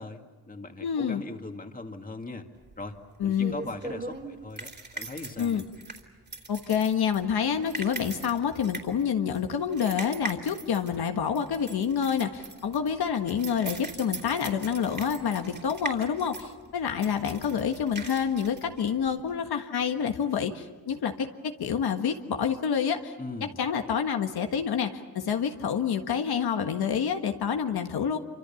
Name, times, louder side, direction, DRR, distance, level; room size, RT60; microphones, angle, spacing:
voice 1, 0.0-2.5 2.8-5.6 23.2-23.6, left 2 dB, 20° left, 4 dB, 2.2 m, -40 dB
voice 2, 0.8-1.2 3.2-3.5 5.4-5.6 6.5-23.1 23.6-28.2, left 7 dB, 75° left, 5 dB, 1.6 m, -28 dB
sound 1, 2.6-19.4, right 3 dB, 25° right, 3.1 m, -41 dB
27.5 x 25.5 x 7.1 m, 1.3 s
cardioid pair, 105°, 38 cm